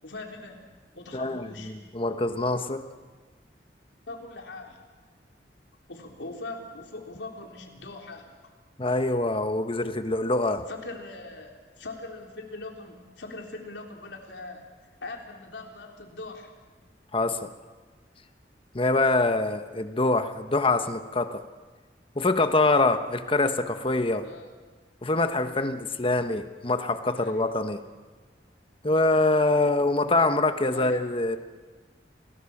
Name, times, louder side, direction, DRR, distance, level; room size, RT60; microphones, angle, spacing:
voice 1, 0.0-0.6 0.9-1.8 4.1-4.8 5.9-8.4 10.7-11.5 11.8-14.7 15.0-16.5 24.2-24.5 27.2-27.4 30.7-31.0, left 2 dB, 85° left, 2 dB, 3.8 m, -41 dB
voice 2, 1.1-2.9 8.8-10.6 17.1-17.5 18.7-21.4 22.1-24.3 25.0-27.8 28.8-31.4, left 2 dB, 30° left, 9 dB, 1.2 m, -25 dB
28.0 x 19.0 x 7.3 m, 1.4 s
head